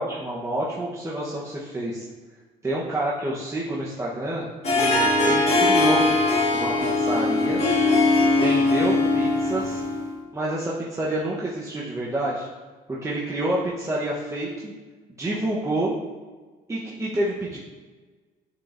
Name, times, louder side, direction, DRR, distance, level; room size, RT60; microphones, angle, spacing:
voice 1, 0.0-2.0 2.6-6.1 6.5-7.6 8.3-9.8 10.3-12.5 12.9-14.7 15.2-15.9 16.7-17.6, right 1 dB, 15° right, -5 dB, 1.0 m, -28 dB
Harp, 4.6-10.1, left 2 dB, 40° left, 1.7 m, -21 dB
9.5 x 4.5 x 2.6 m, 1.3 s
cardioid pair, 110°, 17 cm